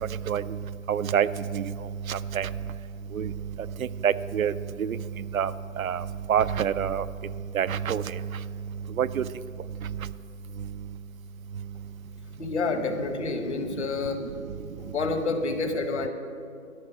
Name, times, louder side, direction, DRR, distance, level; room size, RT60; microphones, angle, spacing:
voice 1, 0.9-1.3 1.5-1.6 2.1-2.5 3.1-3.3 4.0-4.5 4.8-5.0 5.3-5.5 5.8-6.0 6.3-7.0 7.5-8.0 9.0-9.2, right 8 dB, 75° right, 15 dB, 0.5 m, -25 dB
voice 2, 12.4-14.4 14.8-16.1, left 3 dB, 55° left, 6 dB, 1.3 m, -29 dB
13.0 x 5.3 x 7.9 m, 2.4 s
figure-of-eight pair, 155°, 42 cm